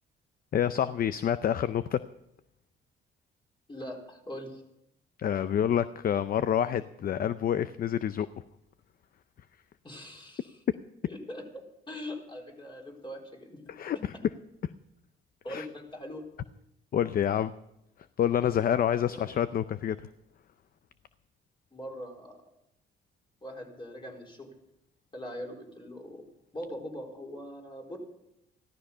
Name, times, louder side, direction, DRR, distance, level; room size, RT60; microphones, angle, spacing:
voice 1, 0.5-2.0 5.2-8.3 13.8-14.0 15.5-15.6 16.9-17.5 18.2-20.0, left 9 dB, 50° left, 14 dB, 0.5 m, -27 dB
voice 2, 3.7-4.6 9.8-10.6 11.0-11.4 11.9-13.7 15.4-16.2 19.1-19.3 21.7-22.4 23.4-24.5 25.1-26.2 26.5-28.0, equal, 25° left, 0 dB, 4.2 m, -41 dB
14.5 x 13.0 x 5.6 m, 0.84 s
cardioid pair, 90°, 20 cm